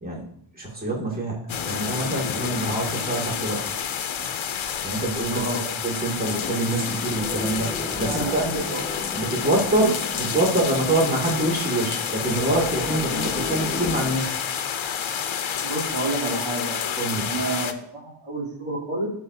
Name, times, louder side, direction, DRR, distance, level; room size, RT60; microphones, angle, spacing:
voice 1, 0.0-3.7 4.8-8.4 9.1-14.4 17.0-17.3, right 2 dB, 20° right, -4 dB, 2.5 m, -26 dB
sound 1, 1.5-17.7, left 8 dB, 80° left, 0.8 m, -29 dB
voice 2, 5.3-5.6 8.0-8.8 9.8-9.9 15.6-19.1, right 2 dB, 75° right, -5 dB, 3.5 m, -30 dB
sound 2, 6.3-14.1, left 2 dB, 5° right, 1.9 m, -35 dB
18.0 x 6.4 x 2.8 m, 0.69 s
wide cardioid pair, 85°, 46 cm